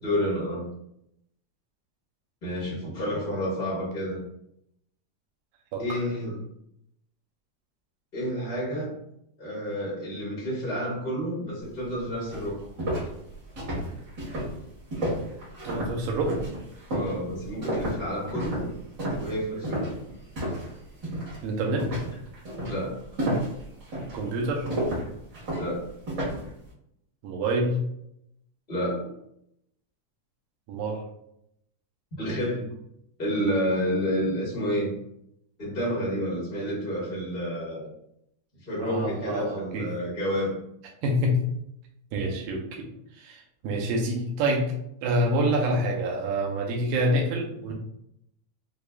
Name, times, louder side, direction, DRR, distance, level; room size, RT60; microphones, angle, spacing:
voice 1, 0.0-0.7 2.4-4.2 5.8-6.4 8.1-8.9 9.4-12.6 16.9-18.7 19.2-19.9 22.7-23.0 25.6-25.8 28.7-29.1 32.2-32.6 33.2-34.9 35.6-37.9 38.6-40.6, equal, 80° left, -6 dB, 0.5 m, -29 dB
voice 2, 5.7-6.0 15.6-16.4 21.4-22.0 24.1-24.7 27.2-27.8 30.7-31.0 38.8-39.9 41.0-41.4 42.1-42.6 43.1-44.7 45.0-47.7, right 1 dB, 85° right, 0 dB, 2.2 m, -27 dB
sound 1, 11.8-11.9 12.3-20.7 21.0-21.4 21.8-26.5, right 1 dB, 45° right, 1.6 m, -31 dB
6.5 x 2.3 x 2.4 m, 0.77 s
omnidirectional pair, 3.8 m